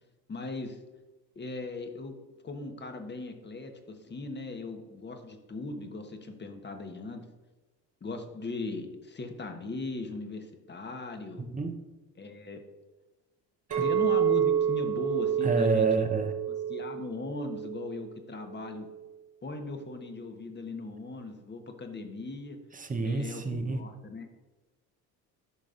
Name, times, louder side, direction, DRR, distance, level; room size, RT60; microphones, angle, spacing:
voice 1, 0.3-0.8 1.3-2.1 2.4-7.3 8.0-11.4 12.1-12.6 13.8-16.0 16.7-18.9 19.4-22.6 23.0-24.3, left 3 dB, 20° left, 6 dB, 1.2 m, -38 dB
voice 2, 11.4-11.7 13.7-13.8 15.4-16.3 22.8-23.8, right 4 dB, 15° right, 6 dB, 1.0 m, -28 dB
Chink clink, 13.7-18.0 18.5-18.9, right 9 dB, 55° right, 1.8 m, -29 dB
12.5 x 6.4 x 2.6 m, 1.1 s
figure-of-eight pair, 60°, 49 cm